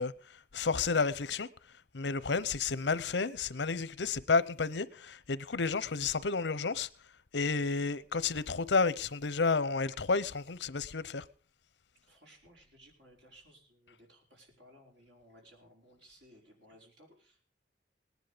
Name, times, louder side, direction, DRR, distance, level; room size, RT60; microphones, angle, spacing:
voice 1, 0.0-1.5 1.9-6.9 7.3-11.2, left 4 dB, 80° left, 0.8 m, -31 dB
voice 2, 12.0-17.4, equal, 80° right, 5.4 m, -60 dB
19.0 x 10.5 x 5.1 m
head